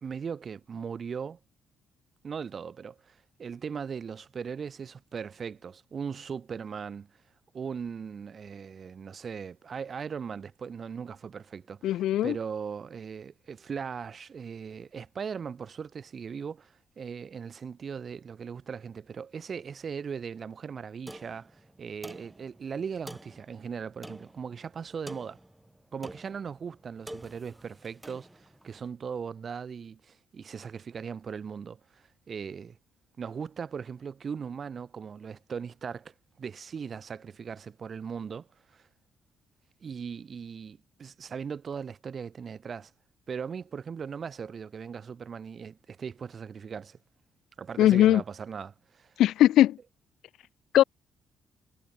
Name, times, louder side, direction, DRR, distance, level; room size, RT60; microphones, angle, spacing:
voice 1, 0.0-1.4 2.2-7.1 7.5-25.4 25.9-32.8 33.2-38.8 39.8-42.9 43.3-47.0 47.6-49.1, right 6 dB, 45° right, 2.3 m, -39 dB
voice 2, 11.8-12.3 47.8-48.2 49.2-49.8 50.7-50.8, left 13 dB, 80° left, 0.4 m, -20 dB
sound 1, 21.1-28.8, right 1 dB, 5° right, 3.2 m, -48 dB
cardioid pair, 90°, 0 cm